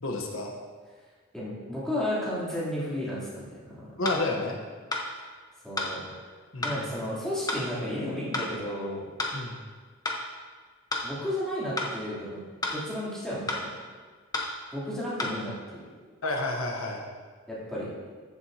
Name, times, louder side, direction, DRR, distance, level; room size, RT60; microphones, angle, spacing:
voice 1, 0.0-0.5 4.0-4.6 6.5-6.7 9.3-9.6 16.2-17.0, left 2 dB, 80° left, 1 dB, 1.1 m, -30 dB
voice 2, 1.3-3.9 5.6-6.1 6.6-9.1 11.0-12.4 12.7-13.8 14.7-15.9 17.5-17.9, left 1 dB, 5° left, -10 dB, 3.2 m, -33 dB
sound 1, 4.0-4.2 4.9-5.1 5.8-5.9 6.6-6.8 7.5-7.7 8.3-8.5 9.2-9.4 10.1-10.2 10.9-11.1 11.8-11.9 12.6-12.8 13.5-13.7 14.3-14.5 15.2-15.4, left 2 dB, 20° left, 1.0 m, -30 dB
14.5 x 7.8 x 2.8 m, 1.5 s
head